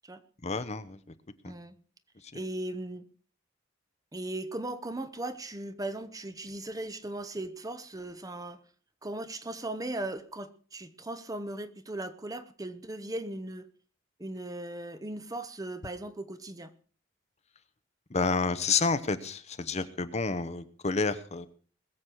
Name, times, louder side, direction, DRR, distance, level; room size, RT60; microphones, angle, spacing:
voice 1, 0.4-1.0 1.4-1.5 18.1-21.5, left 4 dB, 35° left, 0.9 m, -29 dB
voice 2, 1.5-1.8 2.3-3.0 4.1-8.6 9.0-13.7 14.2-16.7, right 1 dB, 20° right, 1.0 m, -38 dB
21.0 x 7.5 x 6.3 m
head